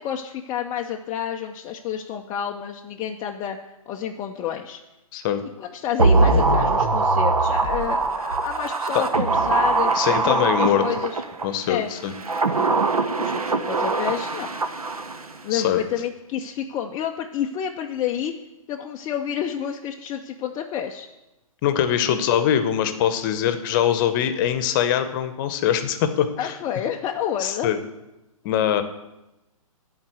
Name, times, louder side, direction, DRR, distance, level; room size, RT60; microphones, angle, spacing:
voice 1, 0.0-3.6 3.9-4.8 5.6-11.2 11.7-11.9 12.6-12.9 13.1-14.5 15.4-18.3 18.7-21.1 22.1-22.2 26.4-27.7, left 9 dB, 20° left, 2 dB, 0.4 m, -29 dB
voice 2, 5.1-5.4 8.9-9.0 9.9-10.8 11.4-12.1 15.5-15.8 21.6-26.6 27.4-27.8 28.4-28.8, left 10 dB, 35° left, 10 dB, 0.9 m, -22 dB
sound 1, 6.0-11.5 12.1-15.3 15.6-15.7, right 3 dB, 80° right, 0.9 m, -22 dB
11.5 x 4.0 x 7.9 m, 0.98 s
figure-of-eight pair, 125°, 18 cm